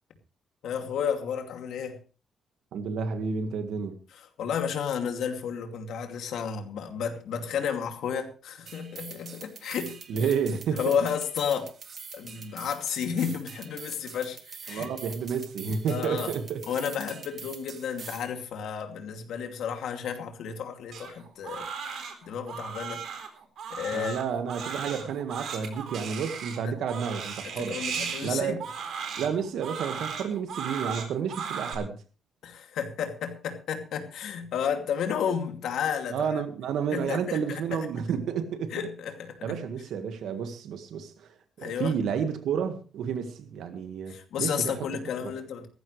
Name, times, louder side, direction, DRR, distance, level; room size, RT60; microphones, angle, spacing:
voice 1, 0.6-2.0 4.1-10.3 10.7-11.7 12.1-14.9 15.9-16.3 16.6-23.0 23.7-24.2 26.6-26.7 27.4-28.6 32.4-36.4 36.9-37.9 38.7-39.6 41.6-41.9 44.1-45.7, left 7 dB, 75° left, 2.6 m, -32 dB
voice 2, 2.7-4.0 10.1-10.9 14.7-16.6 23.9-27.8 28.2-28.5 29.2-32.0 36.1-38.7 39.4-41.3 41.6-44.7, right 7 dB, 75° right, 1.8 m, -30 dB
sound 1, 8.7-18.3, right 6 dB, 40° right, 1.5 m, -44 dB
Crying sobbing, 20.9-31.7, right 6 dB, 60° right, 3.8 m, -36 dB
18.0 x 14.5 x 3.3 m
cardioid pair, 175°, 0 cm